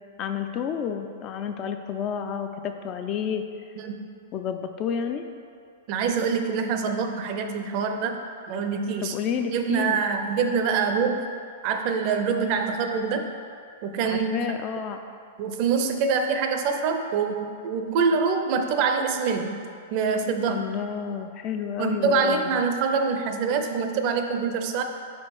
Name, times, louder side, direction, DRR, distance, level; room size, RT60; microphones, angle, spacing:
voice 1, 0.2-3.5 4.3-5.2 9.0-10.0 14.0-15.0 20.5-22.6, left 7 dB, 30° left, 7 dB, 0.3 m, -30 dB
voice 2, 3.8-4.1 5.9-8.2 8.5-9.2 9.5-11.3 11.6-13.3 13.8-14.5 15.4-19.6 19.9-20.6 21.8-24.8, right 5 dB, 45° right, 6 dB, 0.5 m, -25 dB
5.0 x 4.3 x 4.7 m, 2.3 s
hypercardioid pair, 145°, 0 cm